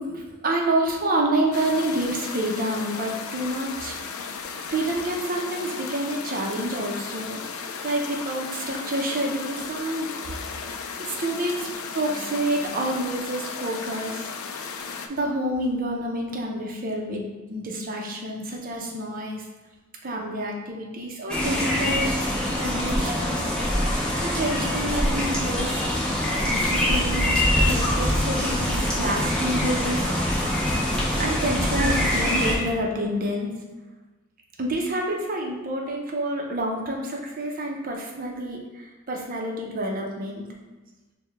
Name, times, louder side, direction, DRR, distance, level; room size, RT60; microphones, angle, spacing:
voice 1, 0.0-4.3 4.7-10.1 11.0-14.3 14.7-19.5 20.0-22.1 22.6-23.5 24.2-25.8 26.2-30.3 31.2-33.5 34.6-40.5, right 1 dB, 40° right, 0 dB, 0.6 m, -28 dB
sound 1, 1.5-15.1, left 5 dB, 75° left, 0.4 m, -35 dB
sound 2, 21.3-32.5, left 1 dB, 5° left, 0.8 m, -24 dB
6.6 x 2.2 x 3.3 m, 1.2 s
head